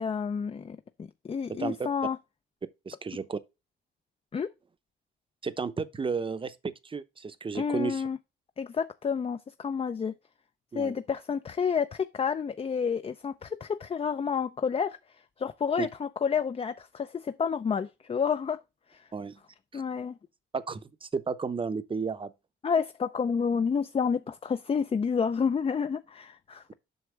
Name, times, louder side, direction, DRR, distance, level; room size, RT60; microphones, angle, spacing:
voice 1, 0.0-2.2 4.3-4.5 7.5-8.2 8.6-10.2 10.7-15.0 15.4-18.6 18.9-19.1 19.7-20.2 22.6-26.6, left 6 dB, 30° left, 0.5 m, -29 dB
voice 2, 2.9-3.4 5.4-8.0 10.7-10.9 15.8-15.9 19.1-19.4 19.7-19.8 20.5-22.3, right 5 dB, 25° right, 0.7 m, -33 dB
8.0 x 5.9 x 3.3 m
cardioid pair, 90°, 20 cm